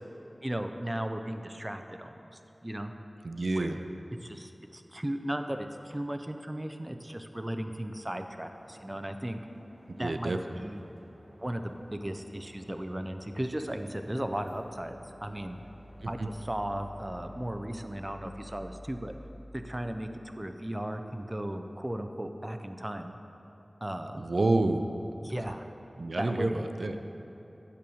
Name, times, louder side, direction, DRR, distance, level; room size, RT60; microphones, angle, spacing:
voice 1, 0.4-2.9 3.6-3.9 4.2-9.4 10.0-10.8 11.4-15.6 16.1-19.1 19.5-20.1 20.4-23.2 23.8-24.2 25.2-25.6 26.2-26.6, right 1 dB, 20° right, 6 dB, 0.5 m, -36 dB
voice 2, 3.2-3.8 9.9-10.6 16.0-16.3 24.1-24.9 26.0-27.1, right 2 dB, 75° right, 7 dB, 0.4 m, -29 dB
sound 1, 8.1-17.4, equal, 30° left, 1.9 m, -57 dB
sound 2, 14.1-21.2, equal, 45° left, 1.9 m, -50 dB
8.7 x 5.7 x 6.3 m, 3.0 s
wide cardioid pair, 60°, 0 cm